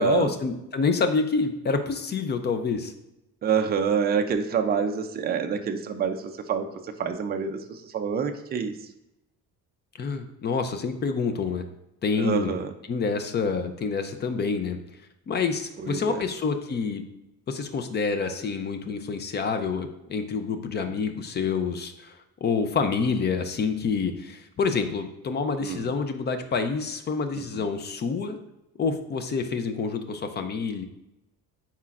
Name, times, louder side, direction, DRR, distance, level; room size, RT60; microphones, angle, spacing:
voice 1, 0.0-2.9 10.0-11.6 12.0-12.5 12.9-14.8 15.3-17.0 17.5-22.1 22.4-28.4 28.8-30.9, left 5 dB, 30° left, 8 dB, 0.5 m, -27 dB
voice 2, 3.4-6.6 7.0-8.7 12.2-12.7 15.8-16.2 25.6-25.9 27.4-27.6, right 6 dB, 25° right, 6 dB, 0.4 m, -27 dB
9.7 x 4.3 x 2.5 m, 0.89 s
cardioid pair, 160°, 36 cm